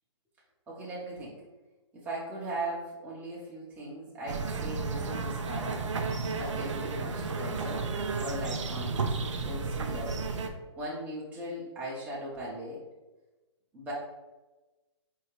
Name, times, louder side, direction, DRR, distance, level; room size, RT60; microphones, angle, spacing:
voice 1, 0.7-1.4 1.9-5.9 6.3-7.9 8.2-10.2 10.8-12.8 13.7-13.9, right 1 dB, 10° right, -6 dB, 0.7 m, -38 dB
sound 1, 4.3-10.5, right 4 dB, 85° right, 0.5 m, -33 dB
4.6 x 2.8 x 3.0 m, 1.1 s
hypercardioid pair, 140°, 15 cm